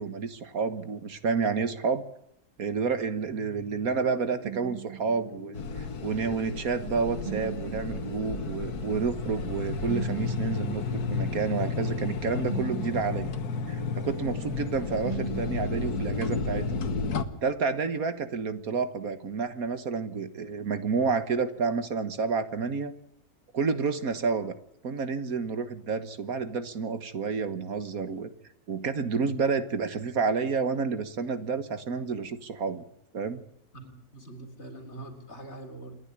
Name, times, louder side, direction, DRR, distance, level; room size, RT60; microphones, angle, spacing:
voice 1, 0.0-2.0 2.6-13.3 13.7-16.7 17.4-22.9 23.5-24.5 24.8-28.3 28.7-32.8 33.1-33.4, right 5 dB, 65° right, 12 dB, 1.9 m, -30 dB
sound 1, 3.1-16.0, right 7 dB, 35° right, 1.8 m, -42 dB
sound 2, 5.5-17.2, left 4 dB, 85° left, 1.8 m, -32 dB
voice 2, 33.7-36.0, right 2 dB, 45° left, 4 dB, 3.9 m, -44 dB
28.0 x 11.0 x 9.8 m, 0.75 s
omnidirectional pair, 1.6 m